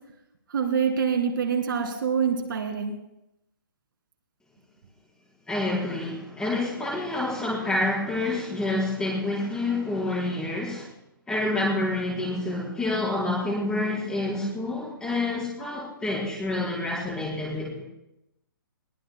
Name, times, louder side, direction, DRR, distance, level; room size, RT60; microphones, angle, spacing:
voice 1, 0.5-2.9, right 6 dB, 65° right, 4 dB, 2.2 m, -25 dB
voice 2, 5.5-10.9 11.3-17.8, left 2 dB, 5° left, -6 dB, 4.8 m, -28 dB
22.0 x 18.0 x 2.3 m, 0.87 s
hypercardioid pair, 155°, 12 cm